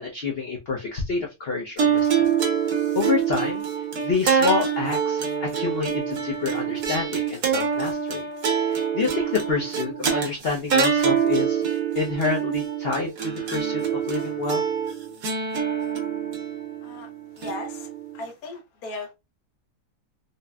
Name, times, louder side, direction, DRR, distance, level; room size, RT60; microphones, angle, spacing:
voice 1, 0.0-2.3 2.9-3.6 4.0-8.3 8.6-14.6, left 4 dB, 55° left, 0.7 m, -28 dB
sound 1, 1.8-18.2, right 7 dB, 80° right, 1.5 m, -25 dB
voice 2, 17.4-19.1, left 2 dB, 70° left, 1.3 m, -37 dB
4.1 x 2.1 x 2.3 m
omnidirectional pair, 1.7 m